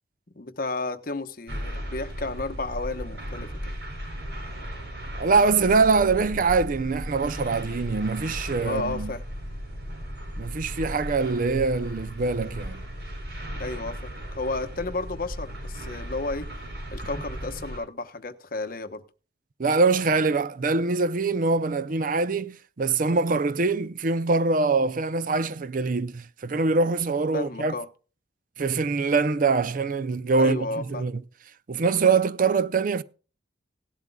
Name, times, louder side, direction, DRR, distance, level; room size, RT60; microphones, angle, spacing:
voice 1, 0.4-3.7 8.6-9.2 13.6-16.5 16.9-19.0 27.3-27.9 30.3-31.1, left 2 dB, 50° left, 1.0 m, -32 dB
sound 1, 1.5-17.8, equal, 70° right, 6.1 m, -36 dB
voice 2, 5.2-9.1 10.4-12.8 19.6-27.7 28.6-31.2 31.7-33.0, right 4 dB, 50° right, 0.5 m, -24 dB
17.5 x 11.5 x 2.3 m
head